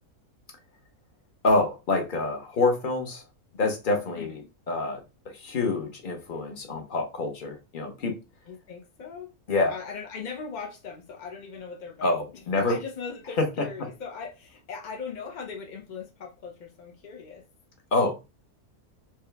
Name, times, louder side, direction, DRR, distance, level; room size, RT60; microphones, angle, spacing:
voice 1, 1.4-3.2 3.6-4.4 4.7-5.0 5.3-8.2 9.5-9.8 12.0-12.8 13.4-13.5 17.9-18.2, left 2 dB, 40° left, 0.8 m, -26 dB
voice 2, 4.1-4.4 8.5-9.3 9.7-12.2 12.6-17.4, left 5 dB, 65° left, 0.4 m, -39 dB
4.5 x 2.3 x 3.3 m
omnidirectional pair, 1.7 m